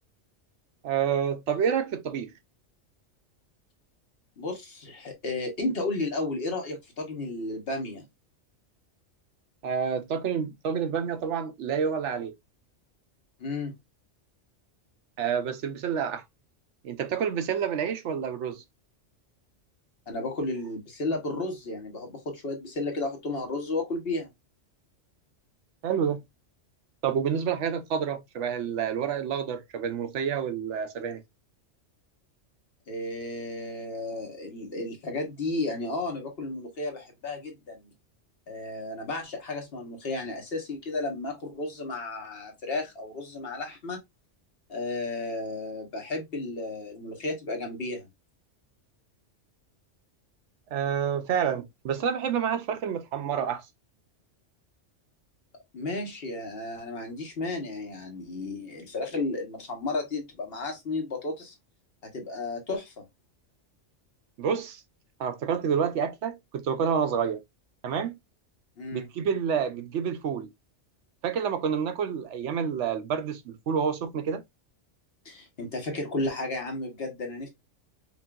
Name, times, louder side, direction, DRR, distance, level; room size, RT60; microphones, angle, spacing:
voice 1, 0.8-2.3 9.6-12.3 15.2-16.2 16.8-18.6 25.8-26.2 27.0-31.2 50.7-53.7 64.4-64.8 65.2-67.4 67.8-68.2 68.9-70.5 71.2-74.4, right 7 dB, 75° right, 0.9 m, -28 dB
voice 2, 4.4-8.0 13.4-13.8 20.1-24.3 32.9-37.8 38.5-44.0 44.7-48.1 55.7-61.5 62.0-63.0 68.8-69.1 75.2-77.5, left 2 dB, 55° left, 1.4 m, -33 dB
5.1 x 2.7 x 2.4 m
omnidirectional pair, 1.3 m